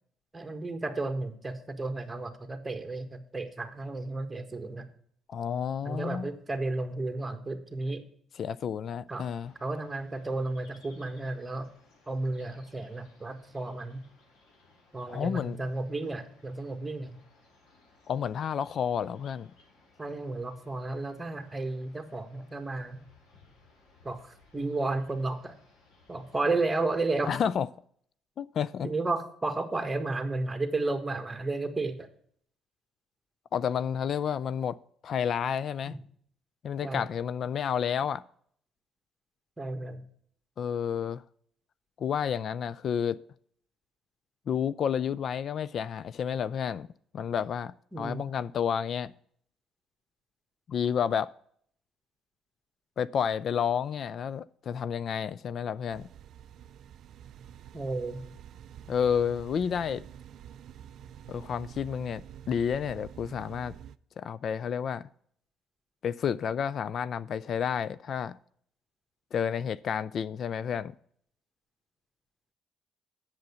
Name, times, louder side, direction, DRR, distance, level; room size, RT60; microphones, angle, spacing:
voice 1, 0.3-4.9 5.8-8.0 9.1-9.3 9.6-11.7 12.1-14.0 14.9-17.1 20.0-23.0 24.0-25.6 26.1-27.4 28.8-32.1 35.8-36.0 36.8-37.0 39.6-40.0 47.9-48.3 57.7-58.2, right 2 dB, 15° right, 1.5 m, -33 dB
voice 2, 5.3-6.3 8.4-9.5 15.1-15.6 18.1-19.5 27.3-27.7 28.4-28.9 33.5-34.8 35.0-36.0 36.6-38.2 40.6-41.2 42.0-43.2 44.5-46.9 47.1-49.1 50.7-51.3 53.0-56.1 58.9-60.0 61.3-63.7 64.2-65.1 66.0-68.4 69.3-70.9, left 8 dB, 55° left, 0.3 m, -30 dB
sound 1, 9.2-27.3, left 3 dB, 90° left, 3.8 m, -62 dB
sound 2, 55.9-64.0, right 9 dB, 65° right, 0.4 m, -48 dB
7.8 x 7.1 x 6.8 m
cardioid pair, 95°, 0 cm